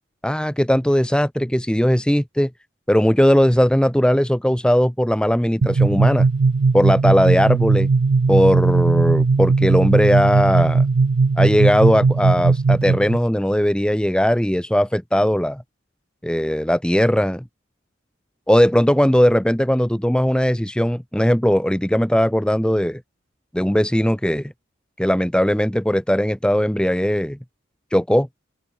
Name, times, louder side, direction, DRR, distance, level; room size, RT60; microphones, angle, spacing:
voice 1, 0.2-2.5 2.9-6.3 6.7-7.9 8.3-10.8 11.4-15.6 16.2-17.4 18.5-23.0 23.5-24.5 25.0-27.4 27.9-28.3, equal, 5° left, 1.1 m, -18 dB
sound 1, 5.6-13.2, right 4 dB, 75° right, 0.5 m, -18 dB
open air
head